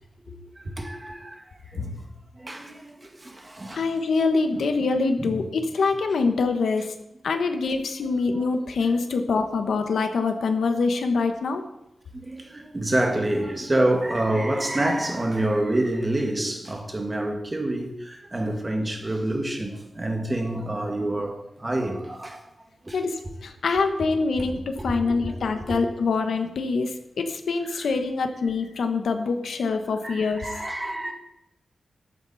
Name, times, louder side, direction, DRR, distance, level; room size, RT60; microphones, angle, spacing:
voice 1, 0.3-2.1 2.3-3.8 4.5-4.6 5.2-5.4 7.3-7.4 8.3-8.5 8.8-9.2 12.1-22.4 22.8-23.0 24.3-24.4 24.8-25.4 25.7-25.8 27.7-27.9 30.0-31.1, right 1 dB, 20° right, 1.8 m, -28 dB
voice 2, 3.7-6.9 7.2-11.6 22.9-30.5, left 4 dB, 85° left, 1.5 m, -25 dB
14.0 x 12.0 x 4.3 m
wide cardioid pair, 165°, 0 cm